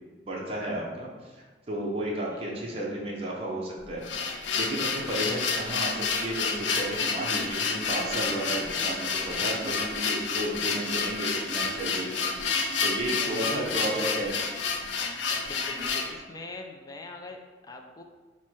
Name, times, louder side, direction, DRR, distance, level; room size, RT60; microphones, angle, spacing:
voice 1, 0.3-1.1 1.4-12.2 12.8-14.4, right 1 dB, 35° right, -4 dB, 0.6 m, -33 dB
sound 1, 3.8-16.1, left 5 dB, 90° left, 0.4 m, -29 dB
sound 2, 6.7-13.8, right 2 dB, 50° left, 0.8 m, -45 dB
voice 2, 13.2-14.2 15.4-18.0, left 3 dB, 20° left, 3 dB, 0.3 m, -42 dB
4.3 x 2.1 x 4.4 m, 1.3 s
head